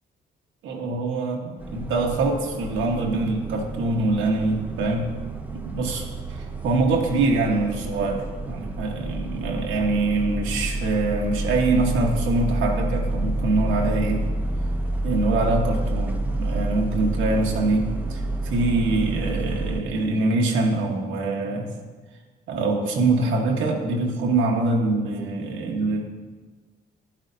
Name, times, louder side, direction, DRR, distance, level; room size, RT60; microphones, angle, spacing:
voice 1, 0.6-5.1 5.5-14.3 15.0-21.7 22.5-26.0, right 2 dB, 90° right, 0 dB, 1.3 m, -24 dB
sound 1, 1.6-19.8, right 2 dB, 10° right, 0.8 m, -29 dB
10.5 x 8.9 x 2.7 m, 1.4 s
cardioid pair, 90°, 20 cm